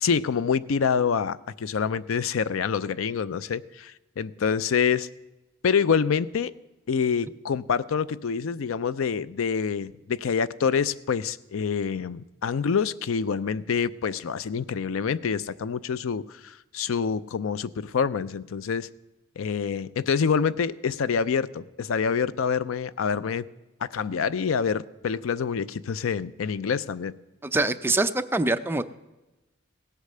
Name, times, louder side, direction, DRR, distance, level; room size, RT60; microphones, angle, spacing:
voice 1, 0.0-5.1 5.6-6.5 6.9-18.9 19.4-23.5 23.8-27.1, left 6 dB, 90° left, 17 dB, 0.5 m, -26 dB
voice 2, 27.4-28.9, right 2 dB, 10° right, 9 dB, 0.5 m, -24 dB
17.0 x 8.2 x 6.7 m, 1.0 s
head